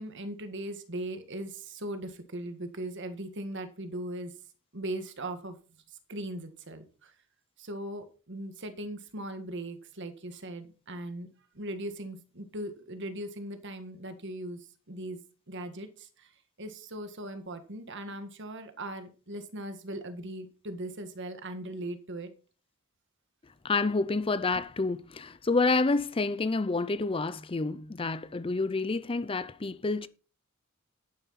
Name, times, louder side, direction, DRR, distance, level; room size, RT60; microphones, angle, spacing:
voice 1, 0.0-4.4 4.7-5.6 5.9-7.1 7.6-11.3 11.5-15.2 15.5-16.3 16.6-22.3, right 1 dB, 55° right, 1.8 m, -39 dB
voice 2, 23.6-30.1, left 3 dB, 25° left, 0.5 m, -28 dB
10.5 x 9.7 x 4.2 m
head